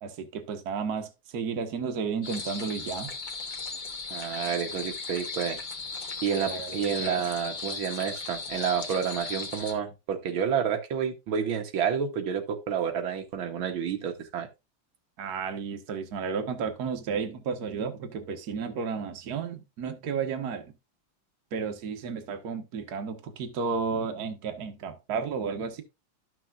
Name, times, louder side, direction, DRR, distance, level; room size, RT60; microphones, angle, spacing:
voice 1, 0.0-3.1 6.3-7.2 15.2-20.7 21.5-25.8, right 5 dB, 55° right, 1.5 m, -33 dB
sound 1, 2.2-9.7, left 4 dB, 35° left, 0.8 m, -37 dB
voice 2, 4.1-5.6 6.2-14.5, right 7 dB, 75° right, 1.8 m, -29 dB
13.0 x 6.2 x 2.4 m
omnidirectional pair, 2.2 m